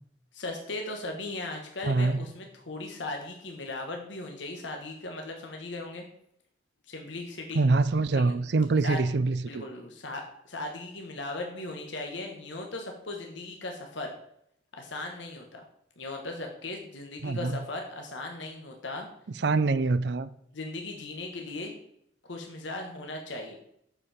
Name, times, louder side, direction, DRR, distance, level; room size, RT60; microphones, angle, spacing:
voice 1, 0.3-6.0 6.9-7.6 8.1-8.3 8.8-9.0 9.5-14.1 14.7-15.6 16.0-19.1 20.5-21.7 22.3-23.6, left 2 dB, 80° left, 1.4 m, -38 dB
voice 2, 1.8-2.2 7.5-9.6 17.2-17.6 19.4-20.3, right 3 dB, 65° right, 0.5 m, -25 dB
8.7 x 6.9 x 4.3 m
head